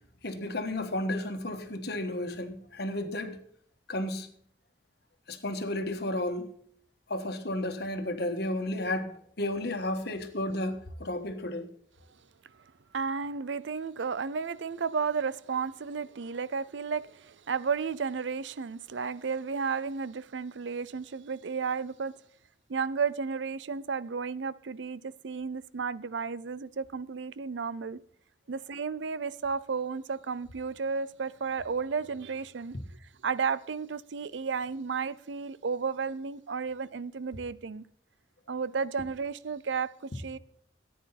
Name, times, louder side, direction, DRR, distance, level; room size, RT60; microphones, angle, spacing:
voice 1, 0.2-3.4 3.9-4.3 5.3-6.5 7.1-11.7, left 1 dB, 60° left, 1.5 m, -33 dB
voice 2, 12.9-22.2 22.7-28.0 28.5-32.8 33.2-37.9 38.5-40.4, right 5 dB, 80° right, 0.5 m, -33 dB
14.5 x 9.4 x 4.2 m
head